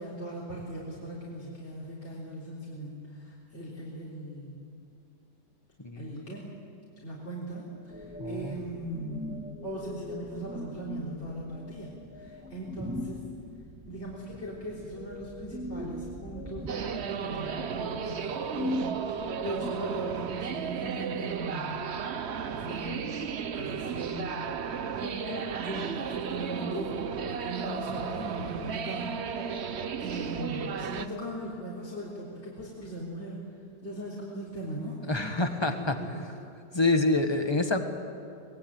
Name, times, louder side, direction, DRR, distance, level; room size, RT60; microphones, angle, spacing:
voice 1, 0.0-4.7 6.0-6.5 7.0-9.4 9.6-13.2 13.9-21.9 22.5-23.1 23.5-24.5 24.9-27.0 27.3-29.6 30.0-33.4 33.8-35.0 35.7-36.1, right 1 dB, 35° left, -5 dB, 4.2 m, -39 dB
voice 2, 5.8-6.2 8.2-8.6 35.1-36.2 36.7-37.9, left 2 dB, 15° left, 6 dB, 1.5 m, -27 dB
sound 1, 7.9-19.7, equal, 5° right, 1.3 m, -40 dB
sound 2, 16.7-31.1, right 7 dB, 50° right, 0.9 m, -34 dB
25.0 x 20.5 x 9.0 m, 2.4 s
omnidirectional pair, 1.9 m